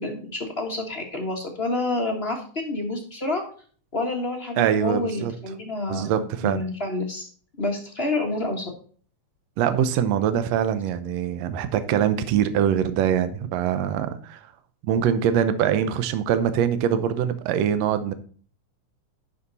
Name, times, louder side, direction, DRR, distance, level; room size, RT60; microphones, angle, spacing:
voice 1, 0.0-3.4 3.9-7.3 7.6-8.6, left 2 dB, 30° left, 1 dB, 1.1 m, -28 dB
voice 2, 4.6-5.3 5.9-6.6 9.6-14.4 14.8-18.1, right 9 dB, 70° right, 11 dB, 1.9 m, -23 dB
11.0 x 5.7 x 4.1 m, 0.43 s
omnidirectional pair, 3.4 m